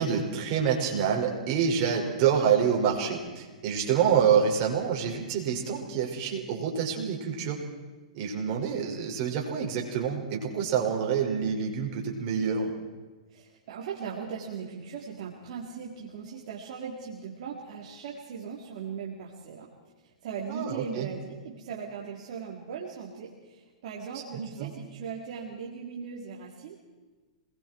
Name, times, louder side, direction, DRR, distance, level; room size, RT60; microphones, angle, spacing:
voice 1, 0.0-7.6 8.1-12.7 20.5-21.1 24.3-24.7, right 7 dB, 40° right, 0 dB, 6.0 m, -27 dB
voice 2, 13.3-19.7 20.0-26.8, right 6 dB, 55° right, -3 dB, 4.0 m, -39 dB
27.5 x 22.0 x 4.7 m, 1.3 s
hypercardioid pair, 140°, 4 cm